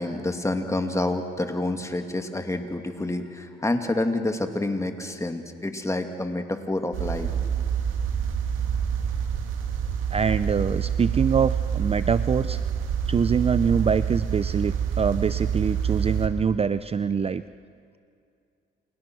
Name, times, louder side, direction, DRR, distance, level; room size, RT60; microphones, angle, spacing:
voice 1, 0.0-7.3, left 2 dB, 15° left, 6 dB, 2.5 m, -28 dB
sound 1, 6.9-16.3, right 7 dB, 90° right, 2.6 m, -27 dB
voice 2, 10.1-12.6 13.1-17.4, right 6 dB, 30° right, 14 dB, 0.6 m, -24 dB
29.5 x 28.5 x 6.3 m, 2.4 s
cardioid pair, 90°, 20 cm